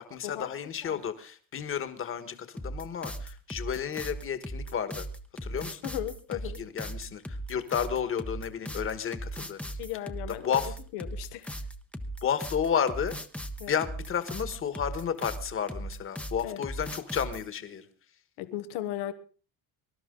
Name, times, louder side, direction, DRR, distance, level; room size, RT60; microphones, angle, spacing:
voice 1, 0.0-5.1 5.4-5.9 6.3-9.6 10.4-10.8 12.2-13.2 13.7-17.9, left 8 dB, 30° left, 11 dB, 1.5 m, -32 dB
sound 1, 2.6-17.5, right 1 dB, 5° left, 0.8 m, -38 dB
voice 2, 5.8-6.6 9.8-10.6 10.9-11.5 13.6-13.7 16.4-16.6 18.4-19.1, left 13 dB, 90° left, 12 dB, 1.3 m, -36 dB
23.0 x 12.5 x 3.8 m, 0.38 s
cardioid pair, 160°, 39 cm